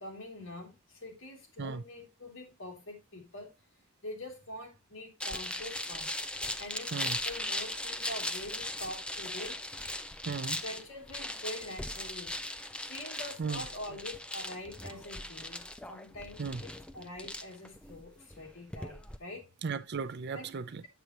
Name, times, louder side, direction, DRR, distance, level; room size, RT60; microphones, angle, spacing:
voice 1, 0.0-3.5 4.0-6.1 6.6-9.6 10.6-12.3 12.8-19.5 20.3-20.6, left 1 dB, 60° left, 2.9 m, -45 dB
sound 1, 5.2-19.2, left 1 dB, 5° left, 0.4 m, -39 dB
voice 2, 10.3-10.6 13.4-13.6 16.4-16.6 19.6-20.8, right 5 dB, 50° right, 0.5 m, -36 dB
8.0 x 7.5 x 2.9 m
head